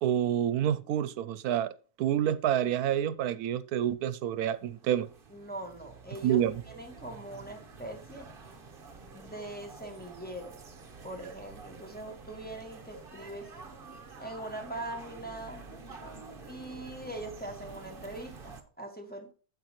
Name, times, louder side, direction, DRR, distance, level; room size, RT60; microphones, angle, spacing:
voice 1, 0.0-1.7 2.0-5.1 6.2-6.6, right 10 dB, 85° right, 1.2 m, -28 dB
sound 1, 4.4-18.6, right 4 dB, 40° right, 1.3 m, -48 dB
voice 2, 5.3-6.4 6.7-8.3 9.1-10.5 11.0-13.5 14.2-15.7 16.4-19.3, right 1 dB, 5° left, 2.0 m, -42 dB
9.1 x 7.8 x 3.0 m
omnidirectional pair, 1.6 m